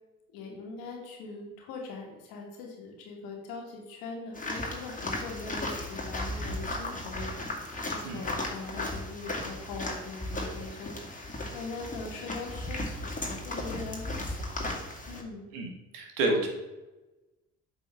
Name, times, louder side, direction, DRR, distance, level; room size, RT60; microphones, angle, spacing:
voice 1, 0.3-14.8 15.1-15.5, left 3 dB, 80° left, 0 dB, 1.8 m, -42 dB
sound 1, 4.3-15.2, left 1 dB, 20° left, 2.2 m, -36 dB
voice 2, 15.5-16.5, right 2 dB, 85° right, 2 dB, 1.5 m, -29 dB
8.4 x 5.4 x 3.4 m, 1.1 s
hypercardioid pair, 50°, 36 cm